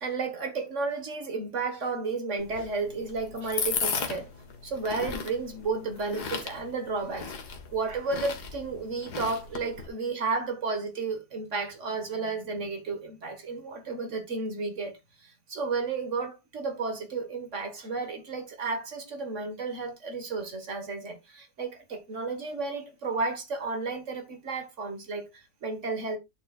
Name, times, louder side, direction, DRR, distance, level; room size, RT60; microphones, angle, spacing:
voice 1, 0.0-4.3 4.6-7.3 7.7-14.9 15.2-26.2, right 4 dB, 50° right, 2.0 m, -32 dB
sound 1, 2.4-9.9, left 6 dB, 80° left, 2.0 m, -36 dB
11.0 x 6.6 x 2.4 m
omnidirectional pair, 1.7 m